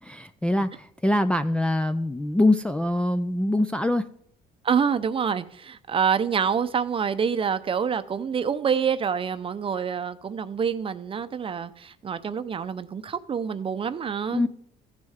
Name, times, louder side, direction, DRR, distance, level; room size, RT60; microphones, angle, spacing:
voice 1, 0.0-4.1 14.3-14.5, left 1 dB, 5° left, 0.4 m, -24 dB
voice 2, 4.6-14.4, right 7 dB, 30° right, 0.6 m, -26 dB
15.0 x 6.3 x 3.6 m
cardioid pair, 110°, 17 cm